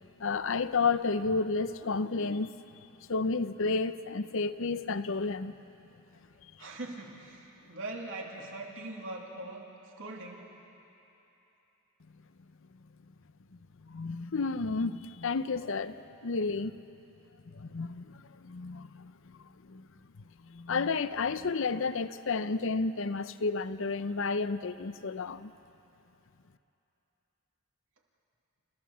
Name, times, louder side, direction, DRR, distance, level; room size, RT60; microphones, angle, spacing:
voice 1, 0.2-2.6 3.1-5.6 13.8-16.0 16.2-16.7 17.5-19.4 19.7-19.9 20.4-25.5, left 4 dB, 70° left, 13 dB, 0.7 m, -31 dB
voice 2, 6.6-9.7 10.0-10.4, right 2 dB, 70° right, -1 dB, 2.9 m, -41 dB
29.5 x 15.5 x 7.2 m, 2.9 s
head